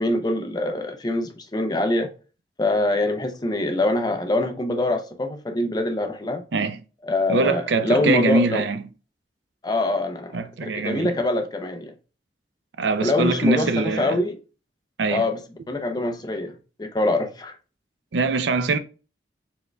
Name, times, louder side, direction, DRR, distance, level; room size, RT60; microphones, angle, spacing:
voice 1, 0.0-2.1 2.6-6.4 7.1-8.6 9.6-11.9 13.0-14.4 15.1-15.4 15.7-17.5, left 2 dB, 25° left, 0.5 m, -24 dB
voice 2, 7.3-8.8 10.3-11.2 12.8-14.2 15.0-15.3 18.1-18.8, right 3 dB, 85° right, 0.5 m, -23 dB
4.4 x 4.4 x 2.2 m
head